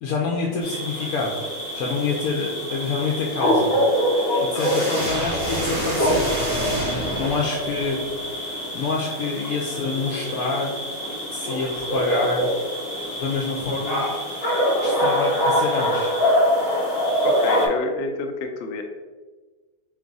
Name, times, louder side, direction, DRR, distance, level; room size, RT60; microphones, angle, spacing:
voice 1, 0.0-1.3 1.7-3.7 4.4-10.7 11.3-12.5 13.2-14.0 14.8-16.1, left 4 dB, 80° left, -1 dB, 1.1 m, -27 dB
sound 1, 0.6-17.7, equal, 45° left, 1.0 m, -24 dB
voice 2, 4.5-5.0 17.2-18.8, left 3 dB, 65° left, 4 dB, 0.6 m, -29 dB
sound 2, 4.5-7.9, right 1 dB, 35° right, 1.2 m, -28 dB
3.5 x 3.1 x 3.9 m, 1.3 s
omnidirectional pair, 1.5 m